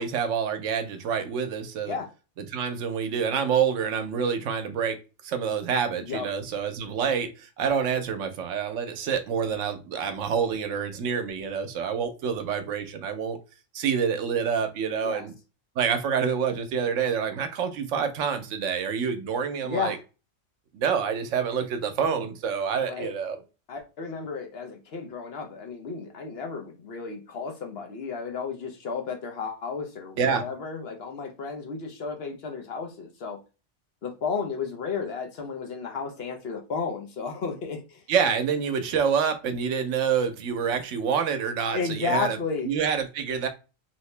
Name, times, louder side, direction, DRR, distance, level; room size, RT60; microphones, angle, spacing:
voice 1, 0.0-2.0 2.5-5.0 5.2-13.4 13.7-15.3 15.8-20.0 20.7-23.4 30.2-30.4 38.1-42.4 42.6-43.5, right 7 dB, 80° right, 1.0 m, -27 dB
voice 2, 19.6-20.0 22.8-23.1 23.7-33.4 34.0-38.0 41.7-42.7, left 5 dB, 60° left, 0.9 m, -33 dB
2.9 x 2.8 x 3.2 m
omnidirectional pair, 1.3 m